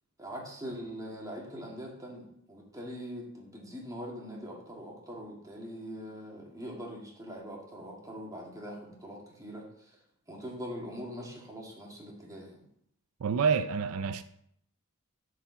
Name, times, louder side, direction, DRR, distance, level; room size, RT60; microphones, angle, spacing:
voice 1, 0.2-10.0 10.3-12.7, equal, 15° right, 2.2 m, -42 dB
voice 2, 13.2-14.2, right 6 dB, 80° right, 0.4 m, -28 dB
7.4 x 4.7 x 7.0 m
head